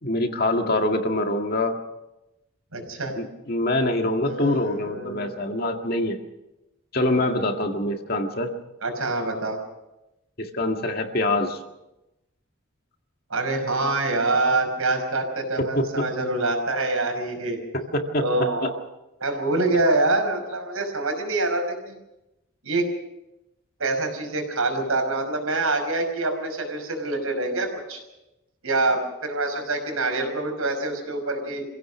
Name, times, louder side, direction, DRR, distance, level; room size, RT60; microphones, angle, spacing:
voice 1, 0.0-1.8 3.2-6.2 6.9-8.5 10.4-11.6 15.6-16.1 17.7-18.3 18.6-18.7, left 1 dB, 45° left, 4 dB, 2.0 m, -25 dB
voice 2, 2.7-3.2 4.2-5.3 8.8-9.6 13.3-17.6 18.2-18.8 19.2-22.0 22.6-22.9 23.8-28.0 28.6-31.6, right 2 dB, 90° right, 4 dB, 5.5 m, -25 dB
26.0 x 16.5 x 6.2 m, 0.96 s
head